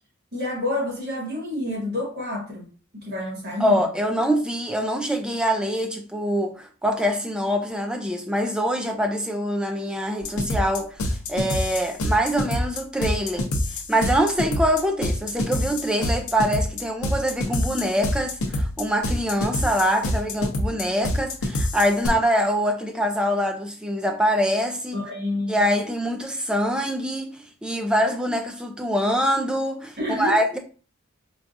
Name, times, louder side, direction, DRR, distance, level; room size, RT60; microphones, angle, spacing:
voice 1, 0.3-2.7 2.9-3.8 24.9-25.6 30.0-30.4, left 1 dB, 50° right, 1.4 m, -28 dB
voice 2, 3.6-13.5 13.9-25.0 25.5-30.6, equal, 5° right, 0.4 m, -24 dB
sound 1, 10.2-22.1, left 1 dB, 85° left, 0.7 m, -26 dB
4.6 x 2.3 x 2.5 m
head